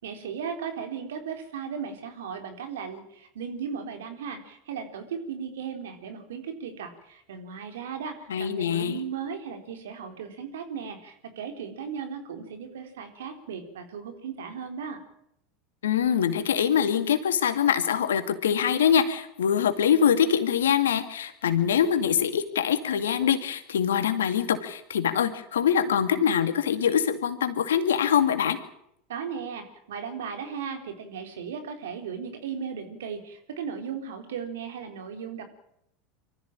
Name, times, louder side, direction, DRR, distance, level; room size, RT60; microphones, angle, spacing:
voice 1, 0.0-15.0 29.1-35.4, right 6 dB, 80° right, 6 dB, 3.9 m, -36 dB
voice 2, 8.3-9.0 15.8-28.6, left 8 dB, 85° left, 9 dB, 2.3 m, -24 dB
24.5 x 14.5 x 8.9 m, 0.76 s
hypercardioid pair, 90°, 0 cm